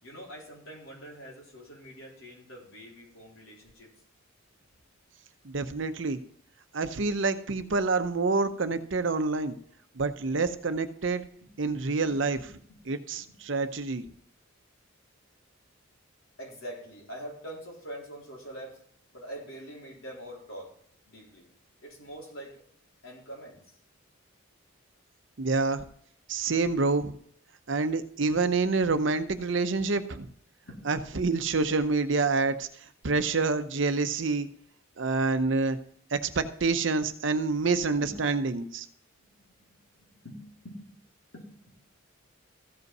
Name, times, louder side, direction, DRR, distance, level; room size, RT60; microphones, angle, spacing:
voice 1, 0.0-3.9 11.4-11.5 12.0-12.8 13.2-13.4 16.4-18.8 19.1-20.7 21.1-21.4 21.8-22.6 23.0-23.6 30.6-30.8 38.0-38.3 39.2-40.9 41.3-41.8, equal, 80° left, -3 dB, 3.9 m, -45 dB
voice 2, 5.4-6.2 6.7-9.6 10.0-11.2 11.6-12.4 12.9-14.0 25.4-25.9 26.3-27.1 27.7-30.3 30.9-32.7 33.0-34.5 35.0-35.8 36.1-38.9, right 3 dB, 60° right, 10 dB, 0.7 m, -27 dB
14.5 x 5.5 x 5.4 m, 0.62 s
head